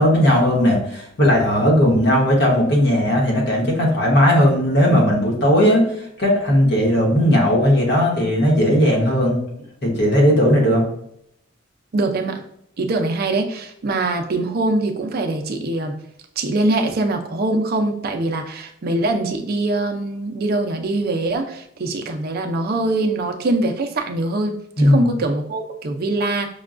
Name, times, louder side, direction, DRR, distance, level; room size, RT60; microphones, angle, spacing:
voice 1, 0.0-5.8 6.2-9.4 9.8-10.8 24.8-25.1, equal, 60° left, -1 dB, 1.1 m, -16 dB
voice 2, 11.9-12.4 12.8-16.0 16.4-26.5, right 2 dB, 50° right, 4 dB, 0.5 m, -23 dB
5.6 x 2.2 x 2.4 m, 0.73 s
head